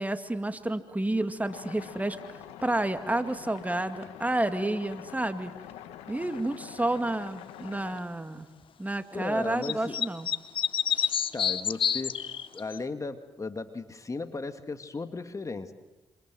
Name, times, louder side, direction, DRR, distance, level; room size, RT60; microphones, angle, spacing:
voice 1, 0.0-5.5 6.1-8.5 8.8-10.3 10.9-11.2, right 1 dB, 15° right, 9 dB, 2.2 m, -30 dB
sound 1, 1.5-8.0, left 11 dB, 85° left, 1.8 m, -45 dB
voice 2, 9.1-10.1 11.3-15.7, left 3 dB, 30° left, 8 dB, 2.2 m, -36 dB
sound 2, 9.6-12.8, left 8 dB, 60° left, 1.0 m, -28 dB
27.5 x 26.5 x 7.8 m, 1.2 s
hypercardioid pair, 50°, 10 cm